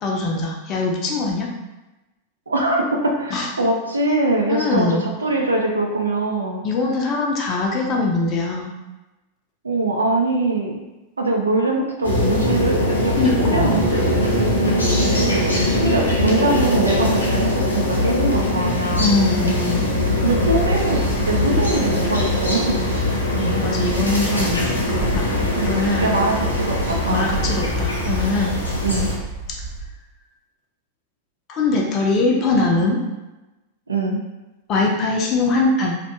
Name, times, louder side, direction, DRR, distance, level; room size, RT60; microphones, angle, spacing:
voice 1, 0.0-1.5 3.3-3.5 4.5-5.1 6.6-8.7 13.2-13.9 19.0-19.9 23.4-24.6 24.9-25.3 25.7-26.1 27.1-28.6 31.5-33.0 34.7-36.0, left 3 dB, 35° left, -1 dB, 0.4 m, -22 dB
voice 2, 2.5-6.6 9.6-10.8 11.2-14.1 15.2-19.1 20.2-22.8 25.5-27.3 28.8-29.1 33.9-34.2, right 2 dB, 75° right, 0 dB, 0.4 m, -22 dB
sound 1, 12.0-29.1, left 1 dB, 80° left, 0.6 m, -21 dB
Wind, 20.0-29.9, right 3 dB, 45° right, 0.9 m, -32 dB
2.6 x 2.1 x 2.7 m, 1.0 s
figure-of-eight pair, 90°, 0 cm